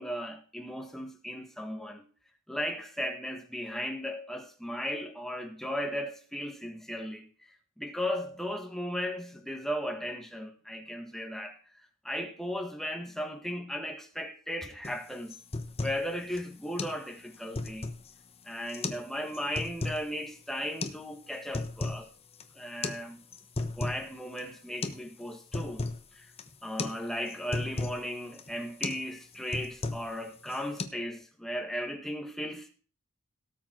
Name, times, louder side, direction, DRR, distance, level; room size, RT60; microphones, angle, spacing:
voice 1, 0.0-2.0 2.5-7.3 7.8-11.6 12.0-15.3 15.8-17.9 18.5-22.1 22.5-23.2 23.8-25.8 26.2-26.3 26.6-32.7, equal, ahead, 1.6 m, -36 dB
sound 1, 14.8-15.0 15.3-16.0 16.4-16.5 16.8-17.0 17.3-18.1 18.7-19.1 19.3-20.0 20.8-21.0 21.3-22.1 22.3-22.4 22.8-23.0 23.3-24.1 24.4-24.5 24.8-25.0 25.3-26.0 26.4-26.5 26.8-27.0 27.3-28.0 28.4-28.5 28.8-29.1 29.3-30.1 30.5-30.8, left 2 dB, 30° left, 1.1 m, -35 dB
18.0 x 7.2 x 4.6 m
head